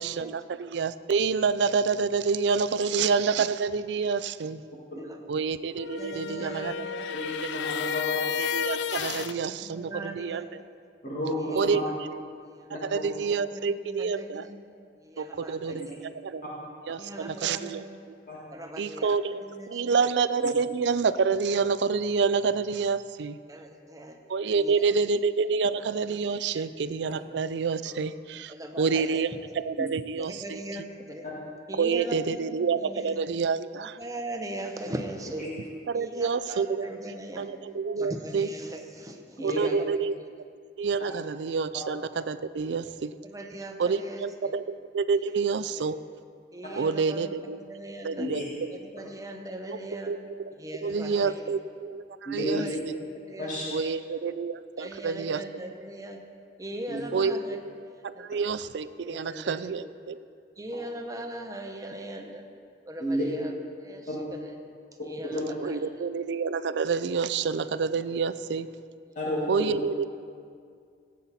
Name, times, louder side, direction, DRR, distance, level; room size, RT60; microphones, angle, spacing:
voice 1, 0.0-4.6 5.3-7.2 7.4-7.5 8.4-10.6 11.5-11.9 12.8-14.5 15.2-16.4 16.9-18.2 18.8-23.4 24.3-30.6 31.8-34.0 35.9-36.9 37.4-38.5 39.4-40.2 40.8-43.1 43.8-46.0 46.8-47.6 48.0-48.5 49.7-50.5 50.8-52.7 53.7-55.4 57.1-57.6 58.0-60.2 65.6-68.7 69.5-70.1, right 5 dB, 80° right, 14 dB, 0.4 m, -28 dB
voice 2, 4.8-5.2 6.0-7.0 9.6-10.4 11.4-11.6 12.4-12.7 13.4-14.6 15.0-16.0 17.0-18.1 18.5-20.1 23.5-24.2 24.5-24.7 26.5-26.6 28.5-29.4 30.3-31.3 31.7-32.5 32.8-33.1 34.0-35.5 35.9-37.5 38.0-40.0 41.1-41.2 43.2-44.5 45.8-45.9 46.5-48.3 48.8-50.1 50.6-51.5 52.4-53.0 53.3-53.9 54.8-56.2 56.6-58.3 59.0-59.9 60.6-62.4 62.9-63.5 63.8-64.6 65.0-65.8 69.5-69.6, right 1 dB, 20° right, 4 dB, 0.9 m, -40 dB
sound 1, 5.8-9.4, left 7 dB, 75° left, 0.3 m, -31 dB
voice 3, 7.1-8.2 11.0-11.8 12.7-12.8 15.7-15.9 18.3-18.4 29.8-29.9 35.4-35.5 39.5-39.7 48.2-48.4 52.3-52.7 53.4-53.6 56.9-57.0 63.0-63.3 64.1-64.2 65.3-65.4 69.2-69.8, equal, 45° left, -6 dB, 1.9 m, -31 dB
16.5 x 8.5 x 4.2 m, 2.3 s
head